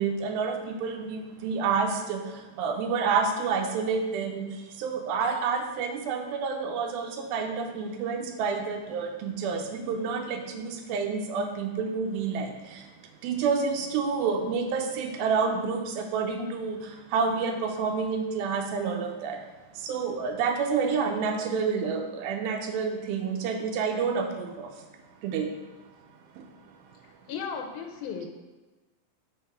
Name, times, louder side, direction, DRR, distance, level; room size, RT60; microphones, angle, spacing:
voice 1, 0.0-12.9 13.2-19.4 19.8-24.8 25.2-25.5 26.4-26.5, right 5 dB, 90° right, 4 dB, 2.5 m, -29 dB
voice 2, 27.0-28.3, left 6 dB, 85° left, 3 dB, 2.3 m, -36 dB
6.6 x 3.5 x 4.7 m, 1.2 s
omnidirectional pair, 4.2 m